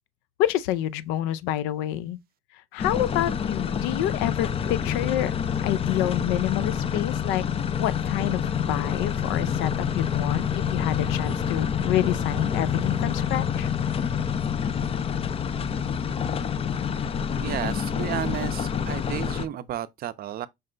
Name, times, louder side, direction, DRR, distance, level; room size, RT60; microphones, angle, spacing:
voice 1, 0.4-2.2 2.7-5.3 5.6-7.4 7.8-13.7, left 12 dB, 90° left, 0.4 m, -28 dB
sound 1, 2.8-19.5, left 7 dB, 30° left, 0.4 m, -27 dB
voice 2, 17.4-20.5, right 12 dB, 50° right, 0.5 m, -32 dB
5.3 x 2.1 x 3.7 m
cardioid pair, 110°, 20 cm